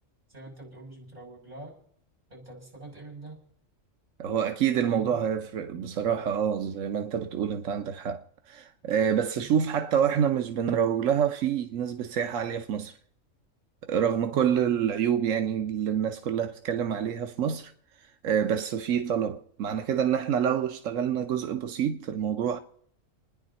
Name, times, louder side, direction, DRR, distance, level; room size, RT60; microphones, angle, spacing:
voice 1, 0.3-1.7 2.3-3.4 4.8-5.2 9.4-9.6 14.3-14.6, right 2 dB, 30° right, 6.5 m, -44 dB
voice 2, 4.2-13.0 13.8-17.7 18.0-22.6, right 8 dB, 85° right, 1.2 m, -27 dB
29.0 x 10.0 x 4.1 m
omnidirectional pair, 1.3 m